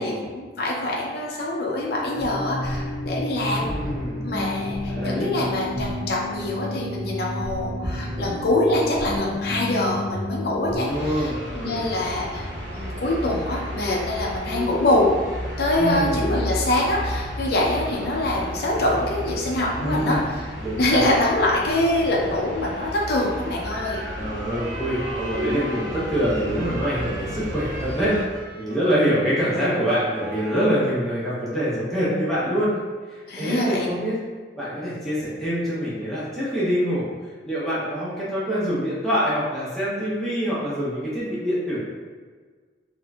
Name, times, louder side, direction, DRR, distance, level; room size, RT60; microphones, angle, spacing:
voice 1, 0.0-3.7 4.2-15.1 15.6-20.4 20.8-24.0 33.3-33.9, left 1 dB, 55° left, -3 dB, 0.4 m, -24 dB
sound 1, 2.1-10.8, left 1 dB, 30° right, 1.4 m, -30 dB
voice 2, 3.6-4.2 4.6-5.5 10.6-11.8 15.8-16.3 19.8-20.2 20.6-21.0 24.1-32.7 33.1-34.2 34.6-41.8, equal, 5° left, -10 dB, 0.8 m, -25 dB
sound 2, 10.9-28.2, equal, 80° right, 0.7 m, -33 dB
Wind instrument woodwind instrument, 23.9-30.9, right 1 dB, 50° right, 0.4 m, -40 dB
4.2 x 2.6 x 2.3 m, 1.5 s
head